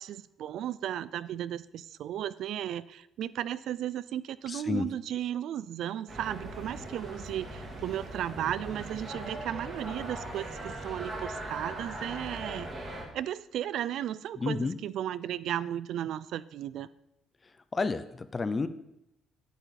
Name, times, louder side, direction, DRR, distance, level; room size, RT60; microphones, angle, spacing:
voice 1, 0.0-12.7 13.1-16.9, right 11 dB, 55° right, 17 dB, 0.3 m, -35 dB
voice 2, 4.5-4.9 14.4-14.8 17.7-18.7, left 4 dB, 20° left, 13 dB, 0.5 m, -30 dB
sound 1, 6.1-13.1, right 1 dB, 25° right, 1.8 m, -40 dB
9.2 x 8.9 x 4.1 m, 0.85 s
cardioid pair, 180°, 0 cm